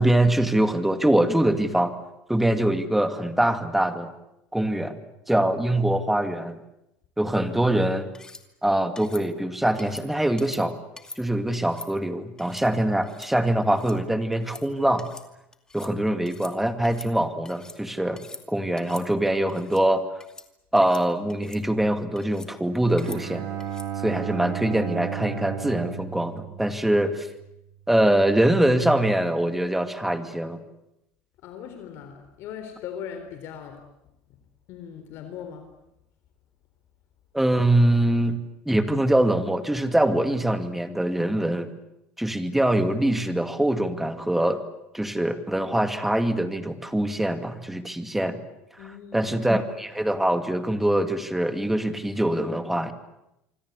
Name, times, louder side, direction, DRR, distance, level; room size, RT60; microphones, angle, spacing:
voice 1, 0.0-1.9 2.3-4.1 4.5-5.0 5.3-6.6 7.2-8.1 8.6-10.8 11.2-15.1 15.7-18.2 18.5-20.0 20.7-23.5 24.0-27.3 27.9-30.6 37.3-41.7 42.2-44.6 44.9-48.4 49.1-52.9, right 1 dB, 5° right, 8 dB, 2.4 m, -23 dB
sound 1, 8.1-8.4 9.0-9.2 9.8-10.1 10.4-10.6 11.0-11.2 11.5-11.9 12.4-12.7 13.0-13.3 13.6-14.0 14.3-14.6 15.0-15.3 15.5-15.9 16.3-16.5 16.8-17.8 18.1-18.4 18.8-19.1 19.5-19.8 20.2-20.5 20.8-21.0 21.3-21.6 22.2-22.5 23.0-23.2 23.6-23.9, left 3 dB, 15° left, 2.5 m, -44 dB
Bowed string instrument, 23.0-27.3, right 10 dB, 75° right, 5.0 m, -34 dB
voice 2, 31.4-33.8 34.7-35.7 48.8-49.3, left 8 dB, 60° left, 7 dB, 3.8 m, -39 dB
27.0 x 24.5 x 8.3 m, 0.87 s
cardioid pair, 125°, 5 cm